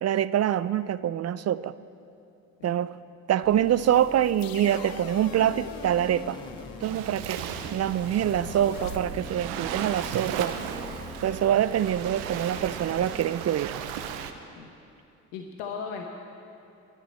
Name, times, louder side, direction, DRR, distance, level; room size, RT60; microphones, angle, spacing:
voice 1, 0.0-1.8 2.6-3.0 3.3-6.4 6.8-7.4 7.7-10.6 11.2-13.7, right 11 dB, 40° right, 16 dB, 0.4 m, -25 dB
sound 1, 3.4-13.2, left 2 dB, 10° left, 1.5 m, -44 dB
sound 2, 3.7-9.0, left 6 dB, 55° left, 1.1 m, -44 dB
Waves surf, 6.8-14.3, right 8 dB, 85° right, 0.8 m, -36 dB
voice 2, 15.3-16.0, left 6 dB, 80° left, 2 dB, 1.0 m, -36 dB
21.0 x 10.5 x 4.3 m, 2.6 s
hypercardioid pair, 50°, 42 cm